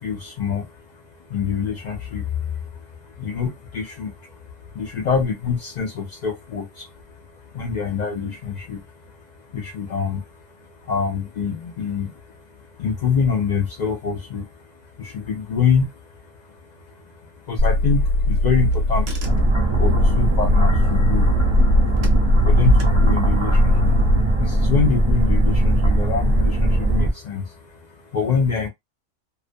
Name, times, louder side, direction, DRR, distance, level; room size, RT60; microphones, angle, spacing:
voice 1, 0.0-28.7, left 6 dB, 75° left, 0.4 m, -26 dB
Car / Engine, 17.6-24.2, left 2 dB, 60° right, 0.9 m, -20 dB
sound 1, 19.2-27.1, right 1 dB, 35° right, 0.5 m, -19 dB
2.3 x 2.1 x 2.5 m
omnidirectional pair, 1.3 m